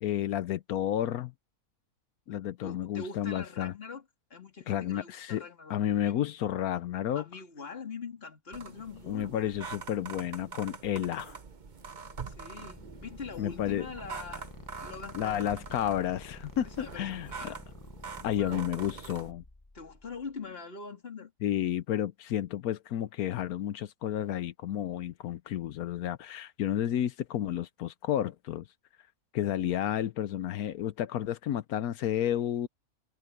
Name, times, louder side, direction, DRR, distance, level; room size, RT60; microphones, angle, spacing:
voice 1, 0.0-1.3 2.3-3.7 4.7-5.4 5.7-7.2 9.1-11.4 13.4-13.9 15.1-17.5 18.2-19.4 21.4-28.6 29.3-32.7, left 11 dB, 85° left, 1.2 m, -31 dB
voice 2, 2.6-4.0 4.3-6.2 7.1-9.5 12.2-14.5 14.8-15.5 16.7-17.6 18.2-18.7 19.7-21.3, left 4 dB, 40° left, 2.9 m, -43 dB
sound 1, 8.5-19.3, right 5 dB, 35° right, 0.9 m, -44 dB
sound 2, 11.5-20.4, left 2 dB, 15° left, 0.9 m, -50 dB
omnidirectional pair, 1.5 m